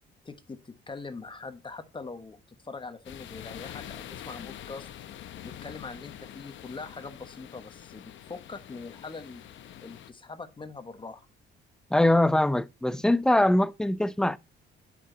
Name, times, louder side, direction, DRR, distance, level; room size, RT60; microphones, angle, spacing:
voice 1, 0.2-4.9 5.4-9.4 9.8-11.3, left 4 dB, 25° left, 1.2 m, -42 dB
sound 1, 3.0-10.1, left 11 dB, 75° left, 0.8 m, -45 dB
voice 2, 11.9-14.4, left 1 dB, 5° left, 0.3 m, -22 dB
8.7 x 5.1 x 4.0 m
cardioid pair, 90°, 20 cm